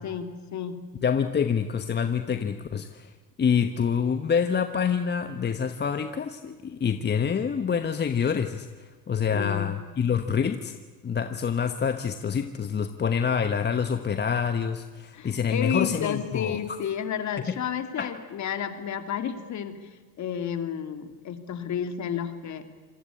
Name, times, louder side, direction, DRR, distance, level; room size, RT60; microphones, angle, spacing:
voice 1, 0.0-0.9 9.3-9.7 15.1-19.9 20.2-22.6, left 8 dB, 40° left, 9 dB, 2.6 m, -31 dB
voice 2, 1.0-3.1 3.4-10.8 11.0-16.6 17.5-17.6 18.0-18.1, left 7 dB, 25° left, 9 dB, 1.2 m, -26 dB
27.0 x 19.0 x 8.5 m, 1.5 s
supercardioid pair, 105°, 42 cm